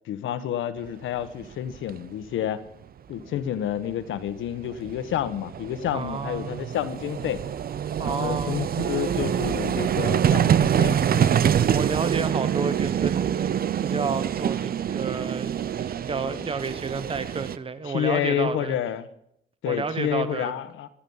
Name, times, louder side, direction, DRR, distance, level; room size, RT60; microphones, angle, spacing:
voice 1, 0.0-2.6 3.1-7.4 8.0-11.3 16.3-16.4 17.8-19.1 19.6-20.9, left 10 dB, 80° left, 12 dB, 1.3 m, -29 dB
Vehicle, 1.4-1.5 1.7-1.9 3.9-4.0 4.2-17.6, right 9 dB, 50° right, 0.7 m, -25 dB
voice 2, 5.9-6.6 8.0-8.6 11.7-15.5 15.8-18.8 19.7-20.5, right 4 dB, 25° right, 13 dB, 1.1 m, -31 dB
16.0 x 11.5 x 5.6 m, 0.72 s
cardioid pair, 90°, 20 cm